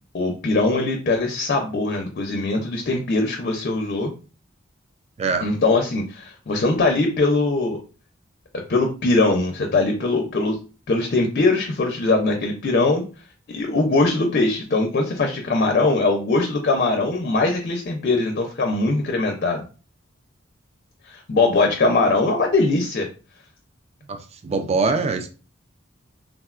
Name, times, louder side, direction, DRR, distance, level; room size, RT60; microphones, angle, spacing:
voice 1, 0.1-4.1 5.4-7.8 8.7-10.6 10.9-13.0 13.5-19.6 21.0-23.1, left 3 dB, 50° left, 3 dB, 0.4 m, -21 dB
voice 2, 5.2-5.5 21.6-21.7 24.1-24.2 24.4-25.3, right 4 dB, 30° right, 7 dB, 0.3 m, -23 dB
3.5 x 2.1 x 2.4 m, 0.35 s
head